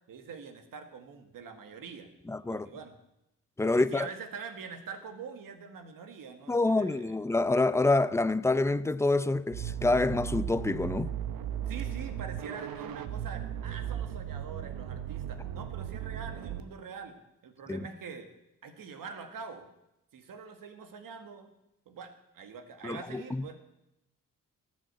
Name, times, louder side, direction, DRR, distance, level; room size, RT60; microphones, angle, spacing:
voice 1, 0.1-2.1 2.5-2.9 3.6-7.2 11.7-17.2 17.4-18.3 18.6-19.7 20.1-21.5 21.9-23.6, right 6 dB, 75° right, 1.9 m, -44 dB
voice 2, 2.3-2.7 3.6-4.1 6.5-11.1 17.7-17.8 22.8-23.5, left 2 dB, 10° left, 0.5 m, -27 dB
sound 1, 9.5-16.6, right 10 dB, 90° right, 1.0 m, -36 dB
17.5 x 6.4 x 8.1 m
cardioid pair, 85°, 34 cm